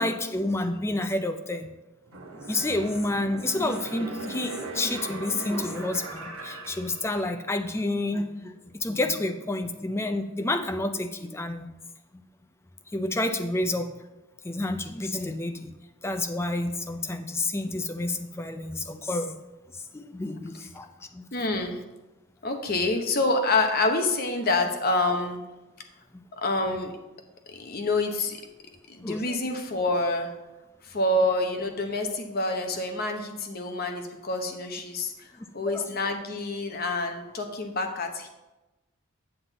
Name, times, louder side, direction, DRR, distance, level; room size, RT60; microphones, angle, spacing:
voice 1, 0.0-1.7 2.1-11.7 12.1-12.2 12.9-13.9 14.4-15.7 16.0-19.4 19.9-20.9 21.1-21.3 26.1-26.2 29.0-29.4 35.7-35.8, left 2 dB, 10° left, 8 dB, 0.4 m, -29 dB
sound 1, 2.1-7.6 8.0-8.1, right 2 dB, 75° right, 1.0 m, -38 dB
voice 2, 21.3-21.8 22.4-25.4 26.4-26.9 27.5-28.4 28.9-30.3 30.9-35.1 35.5-38.3, left 2 dB, 45° left, 4 dB, 0.9 m, -27 dB
7.8 x 7.4 x 4.0 m, 1.0 s
head